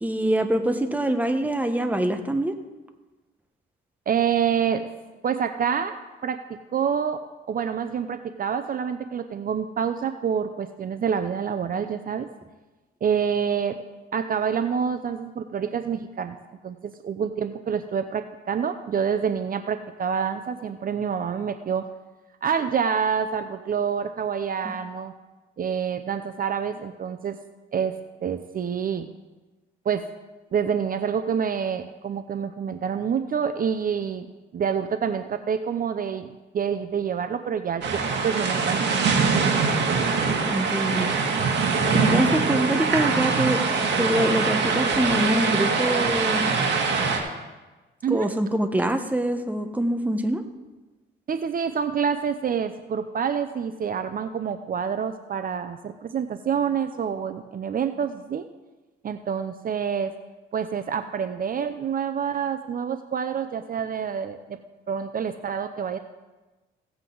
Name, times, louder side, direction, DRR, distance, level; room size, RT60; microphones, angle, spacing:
voice 1, 0.0-2.6 40.5-41.1 41.9-43.6 44.0-46.5 48.1-50.4, right 1 dB, 10° right, 7 dB, 1.1 m, -24 dB
voice 2, 4.1-4.9 5.2-6.0 6.2-12.3 13.0-13.8 14.1-16.4 16.6-21.9 22.4-25.1 25.6-27.4 27.7-29.1 29.8-30.1 30.5-34.3 34.5-38.8 48.0-48.3 51.3-58.5 59.0-60.1 60.5-64.6 64.9-66.0, right 7 dB, 45° right, 9 dB, 0.6 m, -27 dB
sound 1, 37.8-47.2, right 4 dB, 60° right, 2.2 m, -23 dB
16.5 x 8.0 x 3.9 m, 1.2 s
cardioid pair, 90°, 20 cm